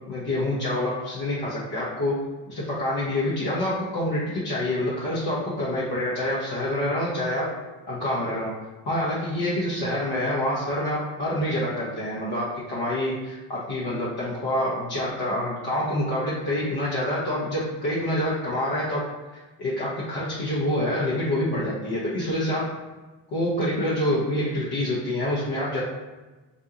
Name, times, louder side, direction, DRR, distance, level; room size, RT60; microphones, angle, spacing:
voice 1, 0.1-7.5 7.9-8.5 8.8-19.0 19.6-22.6 23.3-25.8, left 1 dB, 50° left, -7 dB, 0.9 m, -27 dB
2.6 x 2.2 x 2.8 m, 1.2 s
hypercardioid pair, 45°, 48 cm